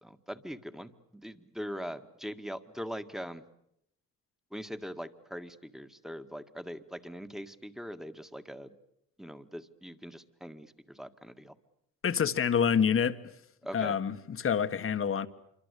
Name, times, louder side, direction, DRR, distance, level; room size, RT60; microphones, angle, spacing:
voice 1, 0.0-3.4 4.5-8.8 9.2-11.5 13.6-14.0, equal, ahead, 1.8 m, -42 dB
voice 2, 12.0-13.2 13.7-15.3, left 7 dB, 45° left, 1.6 m, -27 dB
27.0 x 24.5 x 8.4 m
cardioid pair, 90°, 30 cm